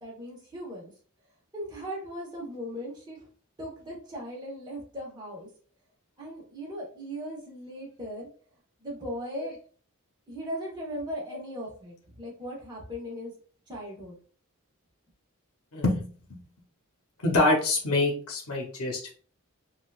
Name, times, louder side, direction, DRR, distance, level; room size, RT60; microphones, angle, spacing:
voice 1, 0.0-0.9 1.5-3.3 3.6-5.5 6.2-8.3 8.8-9.6 10.3-13.3 13.7-14.2, equal, 20° right, -4 dB, 1.1 m, -38 dB
voice 2, 15.7-16.1 17.2-19.1, left 2 dB, 85° left, 0 dB, 0.8 m, -25 dB
3.9 x 2.4 x 2.4 m, 0.43 s
head